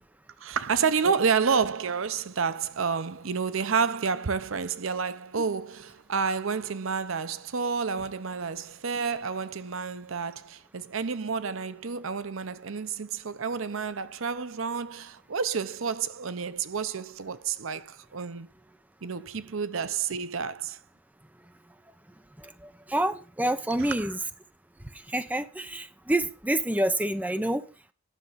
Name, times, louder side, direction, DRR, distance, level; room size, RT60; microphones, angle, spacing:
voice 1, 0.4-18.5 19.0-20.8 23.8-24.1, right 5 dB, 70° right, 0.7 m, -30 dB
voice 2, 22.4-24.2 24.9-27.7, right 1 dB, 10° right, 0.8 m, -28 dB
10.0 x 6.8 x 5.7 m
head